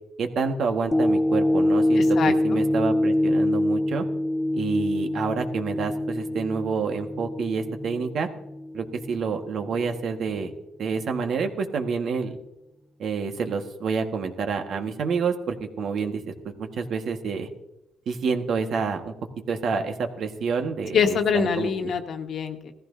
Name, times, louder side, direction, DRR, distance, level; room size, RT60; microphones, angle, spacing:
voice 1, 0.2-4.1 4.5-8.3 8.7-10.5 10.8-12.4 13.0-16.3 16.6-17.5 18.1-19.1 19.5-21.7, right 5 dB, 65° right, 5 dB, 1.6 m, -28 dB
sound 1, 0.9-9.3 9.8-9.9, left 1 dB, 10° left, 0.4 m, -25 dB
voice 2, 2.0-2.6 20.9-22.7, left 6 dB, 65° left, 6 dB, 1.5 m, -25 dB
18.0 x 14.5 x 2.7 m, 0.90 s
cardioid pair, 90°, 0 cm